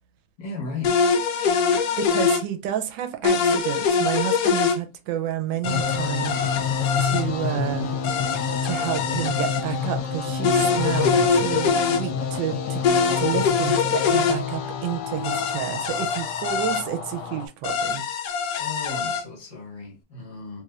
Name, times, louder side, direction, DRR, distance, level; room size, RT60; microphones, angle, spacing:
voice 1, 0.4-1.0 18.5-20.6, left 4 dB, 20° left, 1.0 m, -35 dB
sound 1, 0.8-2.4 3.2-4.8 5.6-7.2 8.0-9.6 10.4-12.0 12.8-14.4 15.2-16.8 17.6-19.2, left 5 dB, 85° left, 0.8 m, -23 dB
voice 2, 2.0-6.4 7.0-7.9 8.6-12.8 13.2-18.0, right 11 dB, 75° right, 1.2 m, -30 dB
sound 2, 5.6-17.5, left 6 dB, 70° left, 1.1 m, -29 dB
3.2 x 3.1 x 2.4 m
omnidirectional pair, 2.3 m